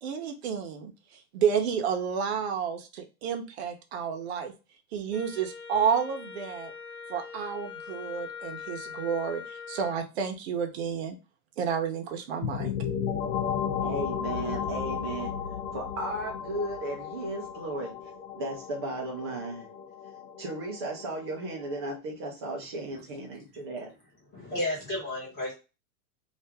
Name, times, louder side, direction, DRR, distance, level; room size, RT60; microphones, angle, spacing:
voice 1, 0.0-0.9 1.3-4.5 4.9-6.7 7.1-11.2 11.6-12.7, right 7 dB, 45° right, 5 dB, 0.7 m, -30 dB
Wind instrument woodwind instrument, 5.1-10.0, left 6 dB, 55° left, 1.5 m, -42 dB
sound 1, 12.4-22.0, left 8 dB, 85° left, 0.7 m, -34 dB
voice 2, 13.8-15.3 15.7-17.9 18.3-19.7 20.4-23.9, right 2 dB, 20° right, 0 dB, 0.4 m, -35 dB
voice 3, 24.3-25.5, left 1 dB, 20° left, -6 dB, 1.4 m, -32 dB
2.8 x 2.5 x 3.4 m, 0.30 s
supercardioid pair, 170°, 44 cm